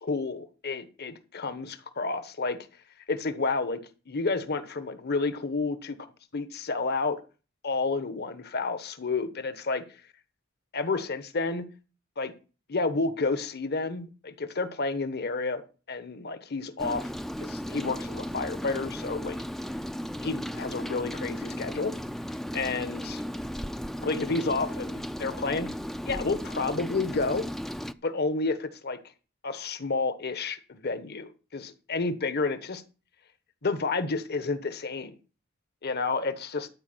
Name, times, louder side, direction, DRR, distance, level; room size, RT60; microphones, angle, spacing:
voice 1, 0.0-2.6 3.1-6.0 6.3-7.2 7.6-9.8 10.7-11.7 12.2-12.3 12.7-15.6 15.9-17.1 17.4-19.4 20.2-21.9 22.5-23.2 24.0-25.7 26.1-27.5 28.0-29.0 29.4-32.8 33.6-35.1 35.8-36.7, left 3 dB, 50° left, 12 dB, 1.2 m, -30 dB
Rain, 16.8-27.9, equal, ahead, 0.4 m, -35 dB
12.5 x 4.8 x 7.8 m, 0.35 s
head